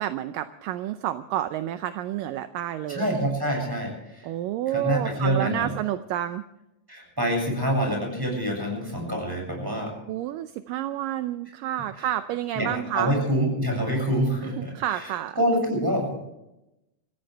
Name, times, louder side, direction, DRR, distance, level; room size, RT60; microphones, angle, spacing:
voice 1, 0.0-3.2 4.2-6.4 10.1-13.1 14.6-15.4, right 12 dB, 80° right, 10 dB, 2.1 m, -29 dB
voice 2, 2.9-4.3 4.7-5.7 6.9-9.9 11.9-12.1 12.5-15.1 15.4-16.1, equal, 5° right, 1 dB, 7.0 m, -26 dB
27.0 x 15.0 x 3.4 m, 0.90 s
omnidirectional pair, 4.4 m